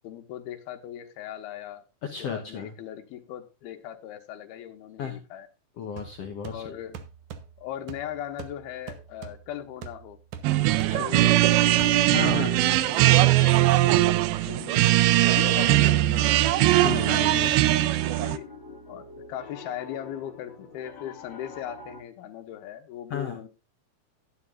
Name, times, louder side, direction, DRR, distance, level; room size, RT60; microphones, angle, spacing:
voice 1, 0.0-1.8 2.2-5.5 6.5-7.0 7.6-10.2 10.7-16.6 18.2-18.5 18.9-23.5, left 11 dB, 90° left, 5 dB, 3.0 m, -39 dB
voice 2, 2.0-2.7 5.0-5.2 5.8-6.6 10.9-11.1 12.1-12.6 16.8-17.6 23.1-23.4, left 7 dB, 70° left, 4 dB, 1.4 m, -33 dB
sound 1, 6.0-13.7, right 7 dB, 65° right, 2.1 m, -44 dB
sound 2, 10.4-18.4, right 16 dB, 85° right, 2.5 m, -20 dB
Piano, 16.4-22.0, left 5 dB, 40° left, 2.1 m, -43 dB
12.5 x 11.0 x 2.5 m, 0.29 s
omnidirectional pair, 4.4 m